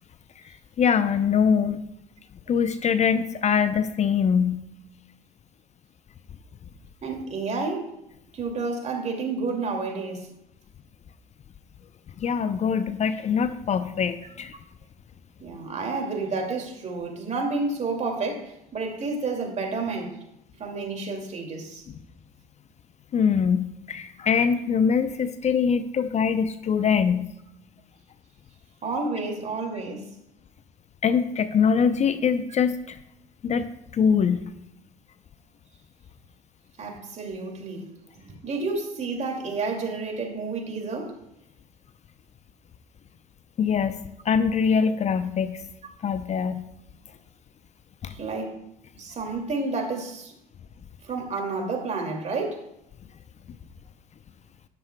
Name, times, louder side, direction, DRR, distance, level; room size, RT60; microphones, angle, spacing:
voice 1, 0.4-1.8 2.5-4.6 12.2-14.5 23.1-27.3 31.0-33.0 33.4-33.7 33.9-34.5 43.6-44.0 44.2-45.6 46.0-46.6 48.0-48.1, left 6 dB, 35° left, 0.7 m, -23 dB
voice 2, 7.0-8.0 8.3-10.3 15.4-20.2 20.6-21.8 28.8-30.1 36.8-37.9 38.2-41.2 48.1-48.6 48.9-50.3 51.0-52.6, right 3 dB, 35° right, 2.5 m, -30 dB
12.0 x 11.0 x 2.3 m
hypercardioid pair, 65°, 19 cm